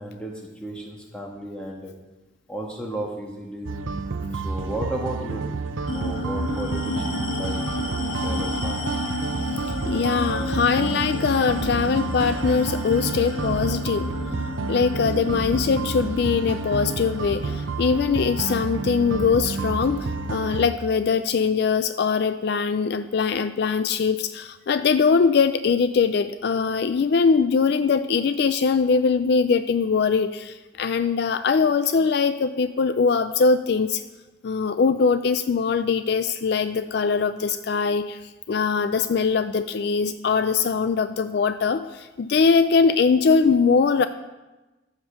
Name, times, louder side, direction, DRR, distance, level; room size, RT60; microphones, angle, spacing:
voice 1, 0.0-1.9 2.5-3.7 4.3-5.4 5.9-9.0, right 1 dB, 5° left, -1 dB, 1.5 m, -34 dB
sound 1, 3.7-20.7, right 3 dB, 80° right, 0.6 m, -30 dB
sound 2, 5.9-20.7, left 1 dB, 90° left, 1.5 m, -32 dB
voice 2, 9.5-14.1 14.7-34.0 34.4-44.1, left 5 dB, 55° left, 11 dB, 0.3 m, -22 dB
14.5 x 5.2 x 6.1 m, 1.1 s
head